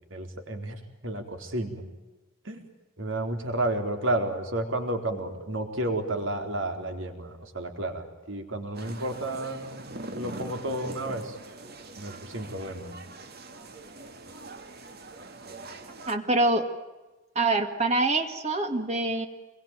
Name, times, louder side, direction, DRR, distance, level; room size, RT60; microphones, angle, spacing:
voice 1, 0.1-1.9 2.4-2.6 3.0-11.4 12.0-13.0, right 1 dB, 65° right, 5 dB, 4.1 m, -32 dB
sound 1, 8.7-16.2, right 2 dB, 50° right, 2.3 m, -42 dB
voice 2, 16.1-16.7 17.4-19.3, right 2 dB, 30° right, 6 dB, 2.0 m, -25 dB
27.5 x 22.5 x 9.2 m, 1.2 s
head